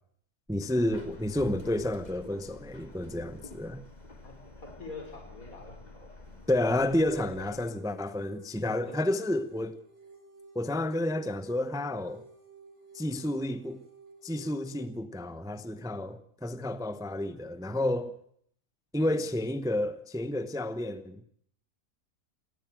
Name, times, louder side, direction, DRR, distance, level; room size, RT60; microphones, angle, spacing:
voice 1, 0.5-3.8 6.5-9.7 10.5-12.2 12.9-13.8 14.2-18.1 18.9-21.2, left 1 dB, 5° right, 0.6 m, -30 dB
Subway metro underground, 0.7-7.7, left 2 dB, 25° left, 2.9 m, -48 dB
voice 2, 4.2-6.4 7.1-7.4 8.8-9.0 19.0-19.3, left 2 dB, 65° left, 5.1 m, -46 dB
sound 1, 6.6-14.8, right 3 dB, 50° right, 5.0 m, -54 dB
18.0 x 16.5 x 9.1 m
omnidirectional pair, 1.6 m